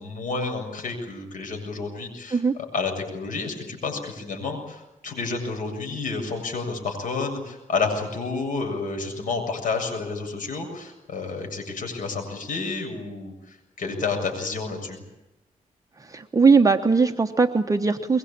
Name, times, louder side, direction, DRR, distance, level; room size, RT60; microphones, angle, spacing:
voice 1, 0.0-2.4 2.7-15.0, left 4 dB, 80° left, 4 dB, 7.4 m, -30 dB
voice 2, 16.0-18.2, right 4 dB, 25° right, 5 dB, 1.1 m, -20 dB
23.0 x 22.5 x 8.8 m, 0.98 s
wide cardioid pair, 115°, 13 cm